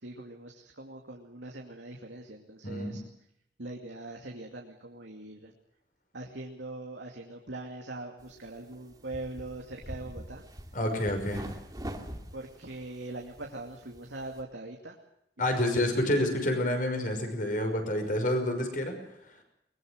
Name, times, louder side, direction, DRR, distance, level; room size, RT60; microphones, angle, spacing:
voice 1, 0.0-3.0 3.6-5.5 6.1-10.4 12.3-15.0, right 2 dB, 85° right, 1 dB, 2.5 m, -42 dB
voice 2, 2.6-3.0 10.7-11.5 15.4-19.0, left 1 dB, 50° left, 5 dB, 5.8 m, -28 dB
sound 1, 8.2-14.4, equal, 20° right, 2.2 m, -45 dB
22.5 x 20.5 x 6.5 m, 0.78 s
head